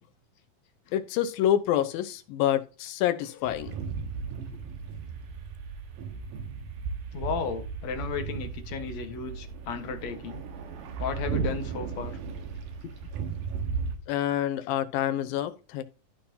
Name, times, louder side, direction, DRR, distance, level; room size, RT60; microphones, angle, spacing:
voice 1, 0.9-3.8 14.1-15.8, left 11 dB, 90° left, 2.7 m, -27 dB
sound 1, 3.5-14.0, right 5 dB, 70° right, 2.9 m, -35 dB
voice 2, 7.1-10.4 11.0-12.2 12.8-12.9, left 5 dB, 60° left, 2.4 m, -34 dB
14.0 x 5.7 x 2.8 m
omnidirectional pair, 4.0 m